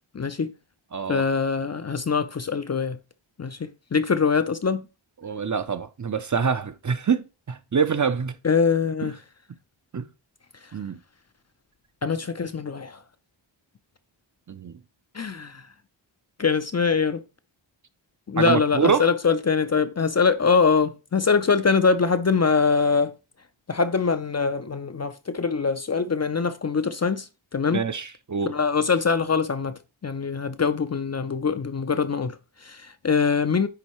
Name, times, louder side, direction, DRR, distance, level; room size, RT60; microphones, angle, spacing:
voice 1, 0.1-0.5 1.1-3.0 3.4-4.8 8.4-9.2 12.0-13.0 15.1-15.6 16.4-17.2 18.3-23.1 23.7-27.8 28.5-33.7, left 5 dB, 35° left, 0.5 m, -23 dB
voice 2, 0.9-1.2 5.2-8.3 9.9-10.1 10.7-11.0 14.5-14.7 18.4-19.0 27.7-28.5, right 6 dB, 40° right, 0.6 m, -25 dB
9.7 x 3.9 x 3.1 m
wide cardioid pair, 80°, 49 cm